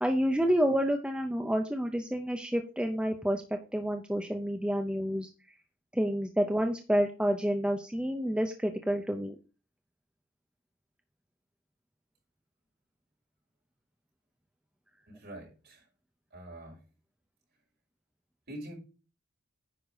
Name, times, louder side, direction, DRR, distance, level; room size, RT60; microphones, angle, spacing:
voice 1, 0.0-3.4 3.7-5.3 5.9-9.3, equal, 5° right, 4 dB, 0.6 m, -29 dB
voice 2, 15.1-15.9 16.3-16.8 18.5-18.8, right 1 dB, 50° right, -3 dB, 5.7 m, -45 dB
10.0 x 5.1 x 4.9 m, 0.34 s
head